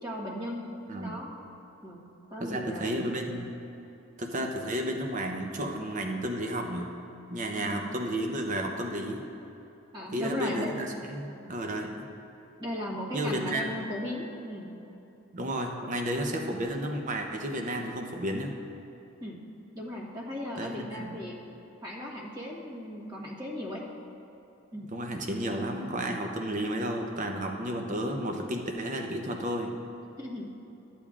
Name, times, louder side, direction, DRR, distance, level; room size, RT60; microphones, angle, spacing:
voice 1, 0.0-0.7 1.0-1.3 1.8-2.0 2.3-2.9 7.6-7.8 9.9-10.7 12.6-14.7 15.8-15.9 19.2-19.4 19.7-21.4 21.8-23.8 24.7-24.9 30.2-30.5, left 1 dB, 20° right, -4 dB, 1.3 m, -36 dB
voice 2, 2.4-3.5 4.2-6.9 7.3-9.2 10.1-12.1 13.1-13.6 15.3-18.5 20.6-21.2 24.9-29.7, right 1 dB, 35° right, 3 dB, 0.7 m, -32 dB
14.0 x 8.5 x 2.4 m, 2.9 s
head